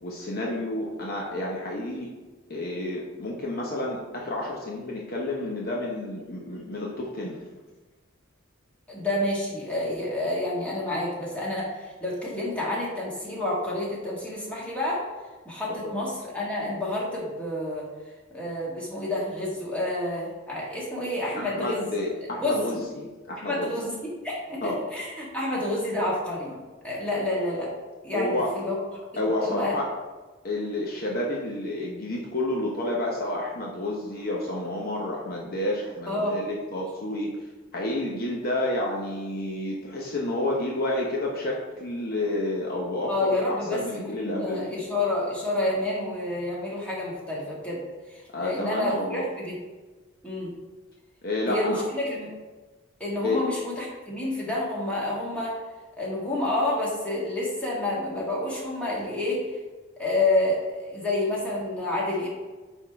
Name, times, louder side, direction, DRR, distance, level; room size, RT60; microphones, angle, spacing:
voice 1, 0.0-2.2 2.5-7.4 21.4-23.7 24.6-24.8 28.1-28.5 29.2-29.9 30.4-37.3 37.7-44.8 48.3-49.2 51.2-51.8 53.2-53.4, left 1 dB, 45° left, -2 dB, 0.9 m, -30 dB
voice 2, 8.9-15.1 15.5-17.9 18.3-21.8 22.3-22.8 23.4-27.7 28.0-28.8 29.4-29.8 36.1-36.4 43.1-47.8 48.1-49.6 50.2-50.5 51.5-52.3 53.0-55.6 56.0-59.4 60.0-62.3, left 1 dB, 5° left, -6 dB, 1.8 m, -29 dB
8.8 x 3.6 x 4.6 m, 1.3 s
head